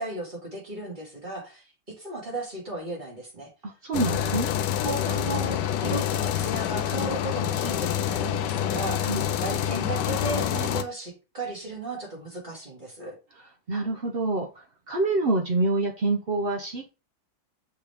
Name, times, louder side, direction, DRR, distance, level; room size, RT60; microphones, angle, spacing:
voice 1, 0.0-3.5 4.1-4.5 4.8-13.2, right 2 dB, 25° right, 2.6 m, -35 dB
voice 2, 3.6-4.5 9.0-9.2 13.7-14.5 14.9-16.9, right 2 dB, 65° right, 0.5 m, -26 dB
sound 1, 3.9-10.8, left 10 dB, 70° left, 1.1 m, -27 dB
6.6 x 4.2 x 3.5 m
omnidirectional pair, 2.2 m